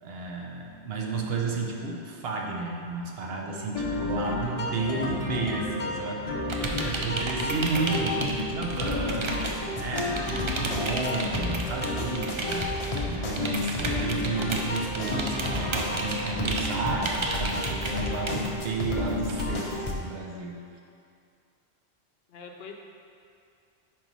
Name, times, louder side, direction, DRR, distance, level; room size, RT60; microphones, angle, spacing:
voice 1, 0.0-6.4 6.8-9.4 9.8-20.6, right 3 dB, 65° right, -1 dB, 1.0 m, -32 dB
sound 1, 3.7-20.0, left 2 dB, 40° left, 0.6 m, -32 dB
voice 2, 6.0-7.1 22.3-22.7, left 4 dB, 70° left, 2 dB, 0.8 m, -42 dB
sound 2, 6.5-20.2, right 2 dB, 50° right, 0.3 m, -34 dB
4.7 x 4.4 x 5.3 m, 2.5 s
omnidirectional pair, 1.1 m